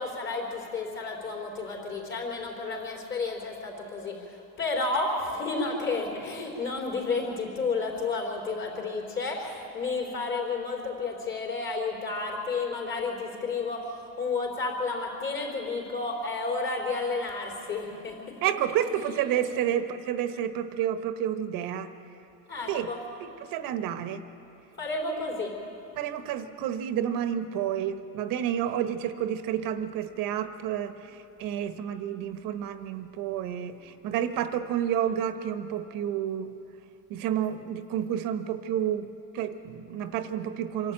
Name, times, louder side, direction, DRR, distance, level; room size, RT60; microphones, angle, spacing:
voice 1, 0.0-18.4 19.4-19.6 22.5-23.0 24.8-25.6, left 3 dB, 35° left, -1 dB, 4.1 m, -31 dB
voice 2, 18.4-21.9 22.7-22.9 23.4-24.3 26.0-36.5 37.1-40.9, right 10 dB, 70° right, 9 dB, 1.2 m, -30 dB
25.5 x 11.5 x 8.9 m, 2.8 s
cardioid pair, 155°, 35 cm